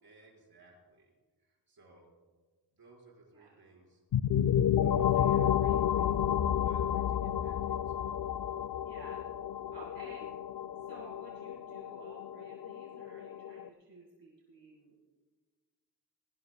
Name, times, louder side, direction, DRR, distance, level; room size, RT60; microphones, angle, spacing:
voice 1, 0.0-2.1 2.7-4.0 4.8-5.5 6.6-8.2, right 2 dB, 60° right, -1 dB, 5.1 m, -61 dB
sound 1, 4.1-13.7, left 10 dB, 55° left, 0.5 m, -31 dB
voice 2, 4.9-6.3 8.8-9.3 9.7-10.3 10.9-14.9, right 3 dB, 85° right, -2 dB, 2.1 m, -54 dB
20.5 x 18.5 x 2.3 m, 1.4 s
wide cardioid pair, 120°, 41 cm